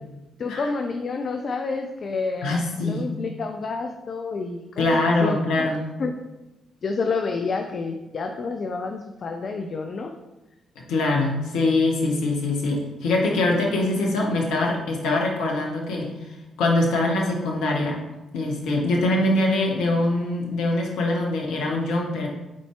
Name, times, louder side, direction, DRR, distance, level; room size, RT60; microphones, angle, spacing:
voice 1, 0.4-5.7 6.0-6.1 6.8-10.1, left 4 dB, 50° left, 4 dB, 0.6 m, -29 dB
voice 2, 2.4-3.1 4.8-5.8 10.9-16.3 16.6-18.0 18.3-22.3, left 2 dB, 70° left, -1 dB, 1.0 m, -23 dB
7.4 x 4.3 x 3.3 m, 1.0 s
figure-of-eight pair, 40°, 0 cm